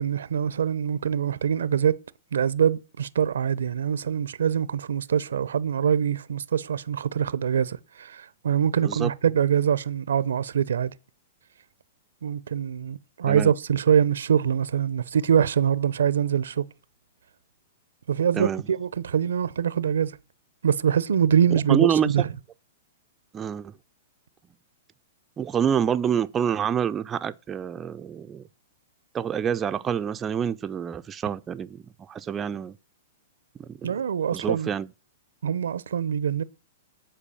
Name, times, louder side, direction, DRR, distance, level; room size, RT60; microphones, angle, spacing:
voice 1, 0.0-1.9 2.3-10.9 12.2-16.7 18.1-20.1 20.6-22.3 33.8-34.7 35.4-36.4, right 8 dB, 85° right, 0.7 m, -24 dB
voice 2, 21.7-22.1 23.3-23.7 25.4-28.4 29.1-32.8 33.6-34.0 34.3-34.9, right 8 dB, 20° right, 0.5 m, -27 dB
10.0 x 4.7 x 7.0 m
hypercardioid pair, 135°, 0 cm